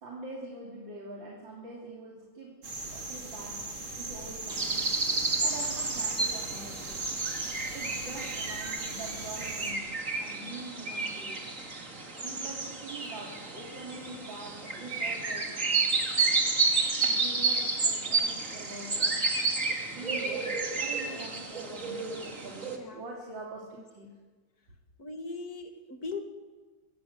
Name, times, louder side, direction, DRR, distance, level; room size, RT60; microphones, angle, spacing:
voice 1, 0.0-5.1 5.4-7.1 7.7-11.5 12.2-15.8 17.0-19.3 19.9-24.2, right 2 dB, 65° right, -3 dB, 3.8 m, -44 dB
sound 1, 2.6-9.7, right 3 dB, 85° right, 4.1 m, -39 dB
sound 2, 4.5-22.8, right 3 dB, 40° right, 3.0 m, -31 dB
voice 2, 25.0-26.2, left 3 dB, 50° left, 5 dB, 2.5 m, -38 dB
25.0 x 17.0 x 8.2 m, 1.4 s
omnidirectional pair, 2.2 m